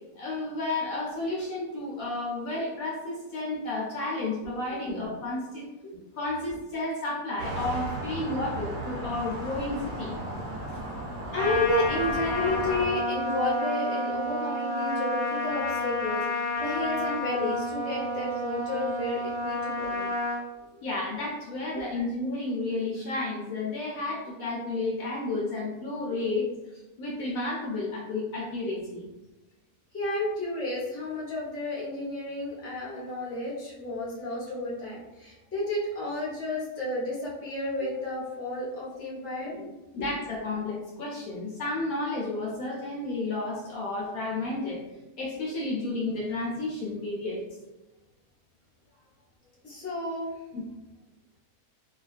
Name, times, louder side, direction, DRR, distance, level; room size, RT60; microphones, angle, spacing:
voice 1, 0.1-5.7 6.1-10.2 20.8-29.1 39.9-44.8 45.2-47.4 50.5-50.7, left 2 dB, 70° left, -3 dB, 0.9 m, -32 dB
voice 2, 4.7-5.0 5.8-6.0 11.3-20.1 21.7-22.0 26.2-26.3 29.9-39.7 40.0-40.1 49.6-50.4, left 1 dB, 20° left, -7 dB, 0.4 m, -31 dB
sound 1, 7.4-12.9, right 1 dB, 60° right, 1.0 m, -35 dB
Trumpet, 11.3-20.4, left 2 dB, 90° left, 0.5 m, -30 dB
2.8 x 2.3 x 2.4 m, 1.0 s
omnidirectional pair, 1.8 m